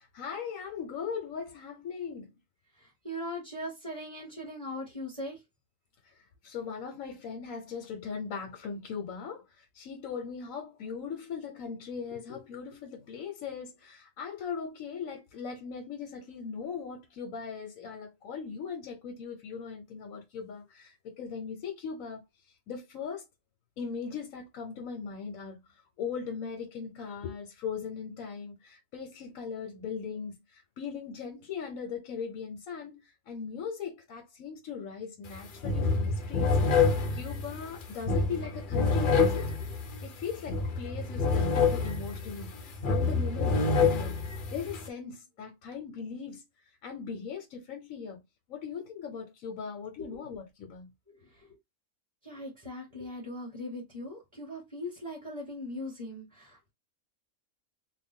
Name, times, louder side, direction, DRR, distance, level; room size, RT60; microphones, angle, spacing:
voice 1, 0.0-2.3 6.0-6.1 6.4-22.2 22.7-23.2 23.8-25.6 26.0-39.5 40.0-44.2 44.5-46.4 46.8-48.2 48.5-50.9, left 6 dB, 90° left, 1.2 m, -39 dB
voice 2, 2.8-5.4 50.1-50.2 51.1-51.5 52.2-56.7, left 1 dB, 25° right, 1.8 m, -40 dB
sound 1, 35.2-35.4 35.6-44.9, left 4 dB, 50° left, 0.7 m, -27 dB
3.5 x 2.2 x 3.7 m
omnidirectional pair, 1.4 m